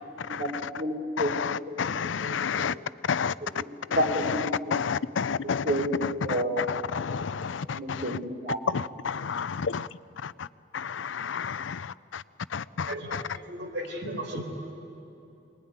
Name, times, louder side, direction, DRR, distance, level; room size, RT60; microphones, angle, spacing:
voice 1, 0.3-1.3 1.7-2.8 3.4-3.7 4.0-4.8 5.6-6.5 7.7-8.6, right 1 dB, 55° right, 0 dB, 3.8 m, -31 dB
voice 2, 1.2-2.7 3.1-3.3 3.9-8.2 8.7-9.9 10.2-10.5 10.7-12.2 12.5-13.2, left 6 dB, 85° left, 17 dB, 0.5 m, -30 dB
voice 3, 12.9-14.4, right 1 dB, 80° right, 1 dB, 4.7 m, -36 dB
24.5 x 21.5 x 9.6 m, 2.8 s
head